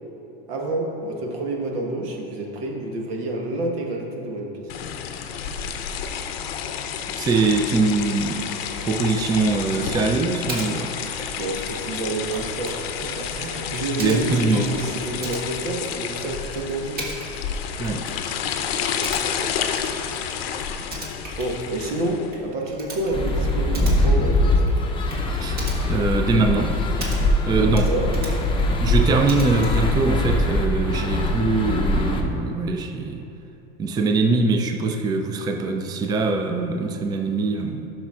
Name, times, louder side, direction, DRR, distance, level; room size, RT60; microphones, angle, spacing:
voice 1, 0.5-4.8 11.4-17.0 21.4-24.6 27.7-28.1, right 2 dB, 85° right, 0 dB, 1.3 m, -28 dB
sound 1, 4.7-22.4, left 8 dB, 85° left, 0.6 m, -30 dB
voice 2, 7.2-8.5 8.8-10.9 14.0-14.7 17.8-18.1 25.4-25.6 25.9-26.7 27.5-27.9 28.8-33.2 33.8-37.9, right 3 dB, 15° right, 4 dB, 0.4 m, -22 dB
Typing, 10.5-10.7 11.0-27.5 27.7-29.9, right 1 dB, 30° right, 1.4 m, -39 dB
sound 2, 23.1-32.2, left 1 dB, 15° left, 0.7 m, -22 dB
12.0 x 6.1 x 2.4 m, 2.9 s
supercardioid pair, 115°, 29 cm